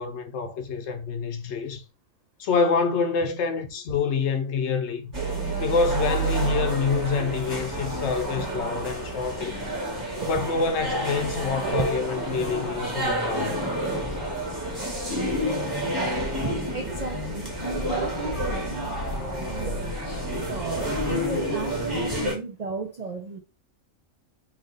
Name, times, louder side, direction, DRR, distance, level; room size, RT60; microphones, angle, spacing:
voice 1, 0.0-1.8 2.4-5.1 5.6-9.6 10.2-13.7, left 5 dB, 65° left, 0.8 m, -27 dB
sound 1, 5.1-22.3, right 1 dB, 20° right, 1.3 m, -29 dB
voice 2, 16.0-23.4, right 4 dB, 85° right, 0.3 m, -35 dB
3.3 x 2.7 x 3.8 m
omnidirectional pair, 1.4 m